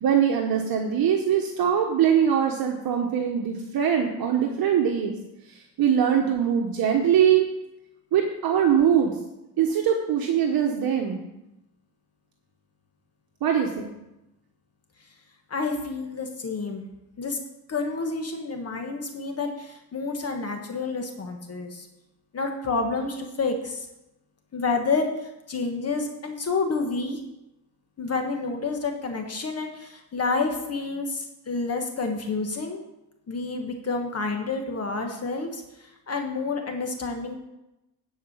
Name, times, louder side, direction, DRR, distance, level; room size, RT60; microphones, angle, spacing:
voice 1, 0.0-5.1 5.5-7.4 8.1-9.1 9.6-11.2 13.4-13.9, right 8 dB, 60° right, 2 dB, 1.1 m, -22 dB
voice 2, 15.5-16.9 17.2-17.4 17.7-21.9 22.3-23.9 24.5-27.2 28.0-32.8 33.3-37.4, left 4 dB, 35° left, 4 dB, 1.3 m, -29 dB
10.0 x 4.9 x 7.2 m, 0.92 s
cardioid pair, 110°, 41 cm